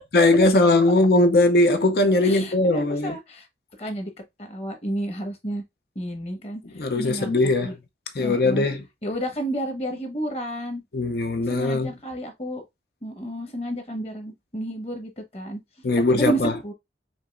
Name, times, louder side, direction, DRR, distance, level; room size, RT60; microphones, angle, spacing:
voice 1, 0.1-3.2 6.8-7.7 8.2-8.8 10.9-11.9 15.8-16.5, left 2 dB, 60° left, 0.6 m, -20 dB
voice 2, 2.2-3.5 3.8-4.1 4.4-5.6 5.9-7.3 7.6-7.7 8.2-8.7 9.0-10.8 11.4-12.6 13.0-15.6 15.9-16.7, right 1 dB, 35° left, 1.3 m, -31 dB
5.2 x 3.0 x 2.4 m
head